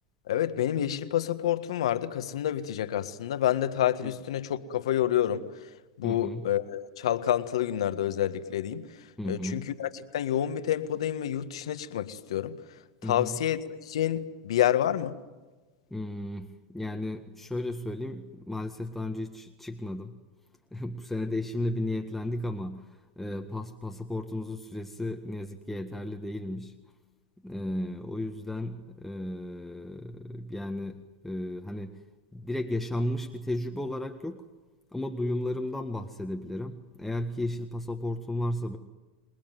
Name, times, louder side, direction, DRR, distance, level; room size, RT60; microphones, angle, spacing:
voice 1, 0.3-5.5 6.0-8.8 9.3-9.9 10.1-12.6 13.1-13.6 13.8-15.1, left 11 dB, 80° left, 10 dB, 1.7 m, -28 dB
voice 2, 6.0-6.5 9.2-9.7 13.0-13.4 15.9-20.2 20.7-26.7 27.4-32.0 32.3-34.5 34.9-38.8, left 1 dB, 5° left, 3 dB, 1.6 m, -34 dB
27.5 x 20.5 x 9.3 m, 1.2 s
hypercardioid pair, 105°, 3 cm